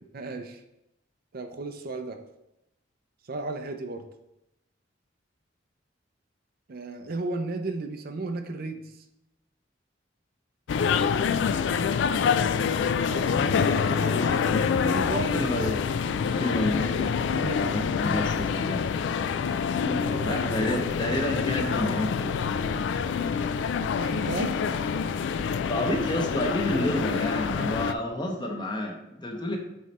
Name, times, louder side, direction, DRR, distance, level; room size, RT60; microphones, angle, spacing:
voice 1, 0.1-0.6 1.3-2.2 3.2-4.1 6.7-9.0 12.8-13.6 14.5-15.4 17.2-17.6 19.8-20.6 24.0-24.6 27.8-27.9, right 3 dB, 50° right, 6 dB, 0.5 m, -34 dB
sound 1, 10.7-27.9, left 6 dB, 65° left, 0.3 m, -26 dB
voice 2, 13.3-14.6 15.2-15.8 16.2-17.1 17.6-18.8 20.2-22.3 25.6-29.6, left 1 dB, 25° left, 1 dB, 0.9 m, -30 dB
7.3 x 3.2 x 4.2 m, 0.87 s
head